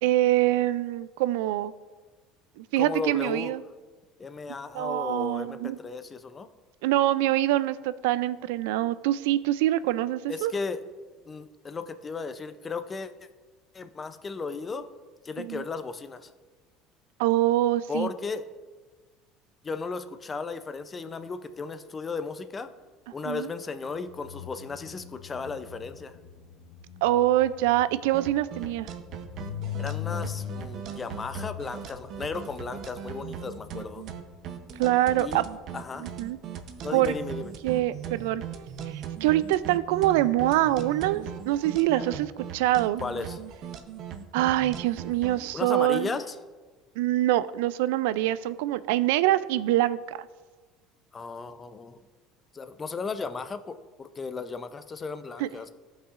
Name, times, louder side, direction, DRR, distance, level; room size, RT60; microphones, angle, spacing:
voice 1, 0.0-1.7 2.6-3.6 4.7-5.8 6.8-10.5 15.4-15.6 17.2-18.1 23.2-23.5 27.0-28.9 34.8-35.4 36.0-36.4 36.9-37.1 37.6-38.4 38.9-43.0 44.3-46.1 47.0-50.3 55.4-55.5, right 14 dB, 90° right, 16 dB, 0.3 m, -25 dB
voice 2, 2.8-3.5 4.2-6.5 10.3-10.8 11.3-13.1 13.7-14.9 15.2-16.3 17.9-18.5 19.6-22.7 23.1-26.1 29.8-34.0 35.2-35.4 35.7-36.1 36.8-37.5 43.0-43.4 45.5-46.3 51.1-52.0 52.5-55.7, left 4 dB, 25° left, 10 dB, 0.5 m, -35 dB
sound 1, 23.8-35.4 41.6-41.7 41.9-42.1, left 9 dB, 80° left, 1.0 m, -41 dB
sound 2, 28.1-45.5, right 8 dB, 50° right, 0.7 m, -39 dB
15.0 x 5.5 x 2.5 m, 1.3 s
cardioid pair, 130°, 0 cm